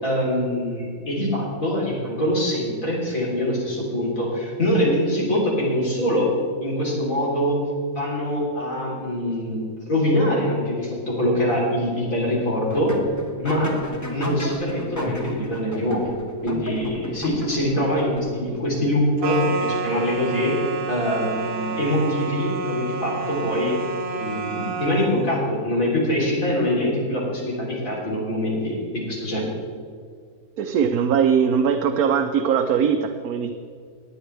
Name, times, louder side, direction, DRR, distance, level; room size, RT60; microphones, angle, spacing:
voice 1, 0.0-6.3 6.6-7.6 7.9-13.0 13.4-13.8 14.1-16.1 16.4-20.6 20.9-23.8 24.2-29.4, left 1 dB, 60° left, -5 dB, 4.0 m, -24 dB
sound 1, 12.7-18.6, equal, 15° left, 1.2 m, -34 dB
sound 2, 19.2-25.2, right 5 dB, 45° right, 0.9 m, -29 dB
voice 2, 30.6-33.5, right 7 dB, 75° right, 6 dB, 1.2 m, -20 dB
19.0 x 9.6 x 3.4 m, 2.1 s
omnidirectional pair, 1.6 m